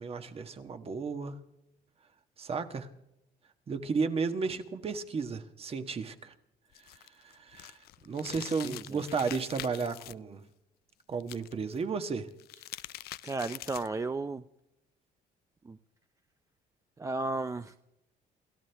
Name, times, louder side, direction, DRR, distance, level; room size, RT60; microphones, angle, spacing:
voice 1, 0.0-1.4 2.4-2.9 3.7-6.3 7.2-7.8 8.0-10.5 11.1-12.3, right 5 dB, 35° right, 8 dB, 1.4 m, -33 dB
sound 1, 6.7-10.1 11.2-11.8 12.3-14.0, left 15 dB, 70° left, 0.5 m, -44 dB
voice 2, 8.6-9.0 13.2-14.4 15.6-15.8 17.0-17.8, right 3 dB, 20° right, 10 dB, 0.5 m, -34 dB
28.5 x 13.5 x 3.5 m, 0.87 s
cardioid pair, 110°, 17 cm